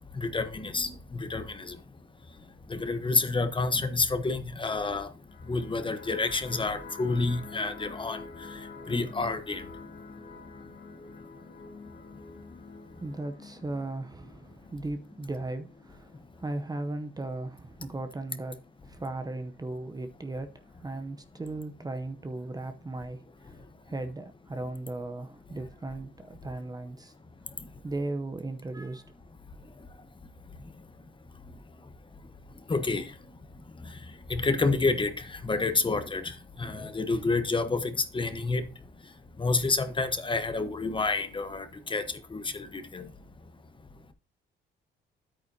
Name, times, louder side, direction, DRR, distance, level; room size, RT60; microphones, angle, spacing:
voice 1, 0.2-1.8 2.7-5.1 5.5-8.2 8.9-9.6 32.7-33.1 34.3-38.7 39.4-43.1, left 3 dB, 25° left, 1.1 m, -29 dB
sound 1, 5.2-16.2, left 4 dB, 50° left, 2.4 m, -47 dB
voice 2, 13.0-23.6 23.9-27.1 27.8-29.0, right 2 dB, 20° right, 0.8 m, -37 dB
9.5 x 8.8 x 2.8 m
cardioid pair, 90°, 20 cm